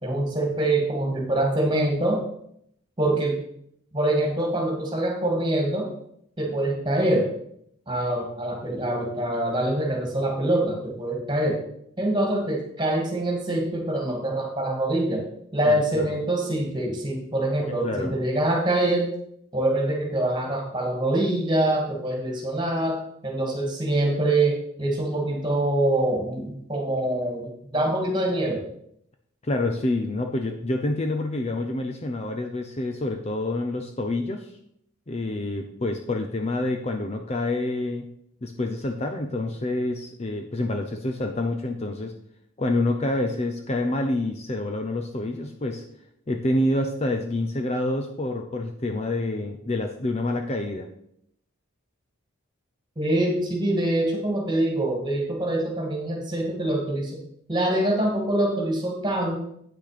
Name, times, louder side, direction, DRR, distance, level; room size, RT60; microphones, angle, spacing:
voice 1, 0.0-2.2 3.0-3.4 3.9-5.9 6.4-7.3 7.9-11.6 12.0-15.3 15.5-19.1 19.5-28.6 53.0-57.2 57.5-59.4, right 1 dB, 20° right, 0 dB, 2.2 m, -25 dB
voice 2, 15.7-16.2 17.7-18.1 29.4-34.5 35.1-38.1 38.4-42.1 42.6-45.8 46.3-50.9, left 2 dB, 30° left, 4 dB, 0.6 m, -27 dB
8.8 x 6.2 x 5.0 m, 0.72 s
head